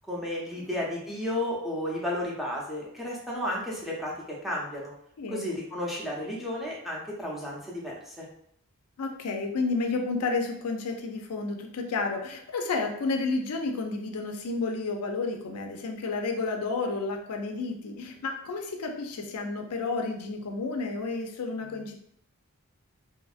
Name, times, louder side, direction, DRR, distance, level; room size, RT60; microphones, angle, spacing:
voice 1, 0.1-4.9 5.3-8.2, left 1 dB, ahead, -5 dB, 0.5 m, -33 dB
voice 2, 5.2-5.5 9.0-22.0, left 3 dB, 80° left, 4 dB, 0.4 m, -31 dB
2.8 x 2.5 x 2.4 m, 0.70 s
head